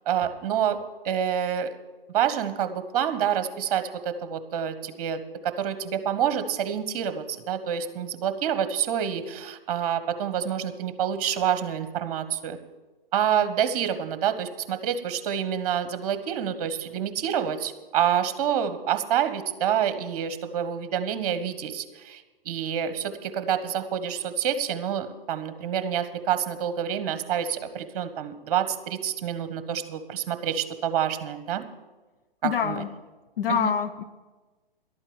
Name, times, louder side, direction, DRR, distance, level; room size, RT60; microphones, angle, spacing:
voice 1, 0.1-0.8 1.0-1.7 2.1-12.6 13.1-31.6 32.4-32.8 33.5-33.7, right 9 dB, 40° right, 11 dB, 1.2 m, -27 dB
voice 2, 32.4-32.9 33.4-34.0, left 8 dB, 70° left, 11 dB, 0.9 m, -26 dB
12.0 x 8.8 x 7.1 m, 1.2 s
figure-of-eight pair, 130°, 29 cm